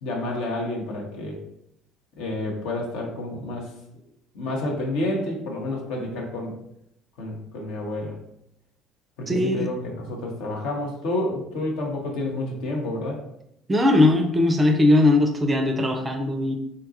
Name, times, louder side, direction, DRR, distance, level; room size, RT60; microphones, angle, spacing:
voice 1, 0.0-1.4 2.2-3.7 4.3-6.5 7.2-8.2 9.2-13.2, left 1 dB, 60° left, 0 dB, 0.7 m, -29 dB
voice 2, 9.3-9.7 13.7-16.6, left 2 dB, 20° right, 5 dB, 0.4 m, -19 dB
3.8 x 2.3 x 2.6 m, 0.78 s
figure-of-eight pair, 60°, 0 cm